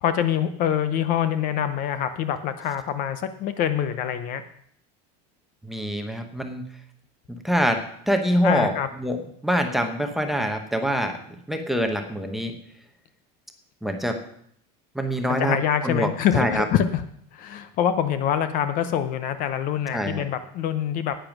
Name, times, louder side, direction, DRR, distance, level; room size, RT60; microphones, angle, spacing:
voice 1, 0.0-4.4 8.4-8.9 15.3-17.0 17.3-21.2, left 9 dB, 40° left, 11 dB, 0.7 m, -25 dB
voice 2, 5.6-6.6 7.3-8.7 9.0-9.2 9.4-11.2 11.5-12.5 13.8-14.2 14.9-15.6 15.8-16.1 16.3-16.6 19.9-20.2, equal, ahead, 5 dB, 0.9 m, -25 dB
10.5 x 9.0 x 6.0 m, 0.67 s
cardioid pair, 165°, 21 cm